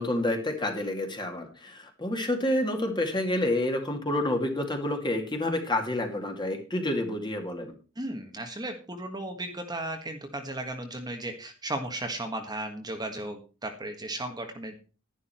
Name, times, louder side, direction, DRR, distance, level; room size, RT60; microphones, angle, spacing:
voice 1, 0.0-7.7, left 1 dB, 20° left, 4 dB, 2.4 m, -29 dB
voice 2, 7.9-14.8, right 1 dB, 20° right, 4 dB, 1.6 m, -35 dB
11.5 x 11.5 x 4.4 m, 0.35 s
head